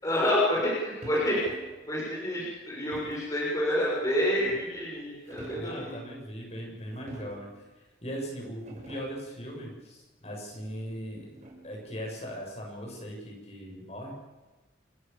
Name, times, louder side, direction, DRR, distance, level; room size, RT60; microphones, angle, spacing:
voice 1, 0.0-1.4 1.9-5.9, left 1 dB, 20° left, -5 dB, 6.5 m, -28 dB
sound 1, 1.0-1.8 2.9-3.4 4.0-4.8 5.2-5.8 6.9-7.6 8.2-8.3 8.5-9.3 10.6-11.8, equal, 40° right, 6.5 m, -48 dB
voice 2, 5.5-7.5 7.8-11.3 11.6-14.1, equal, 35° left, 0 dB, 7.4 m, -39 dB
29.5 x 16.0 x 7.2 m, 1.2 s
head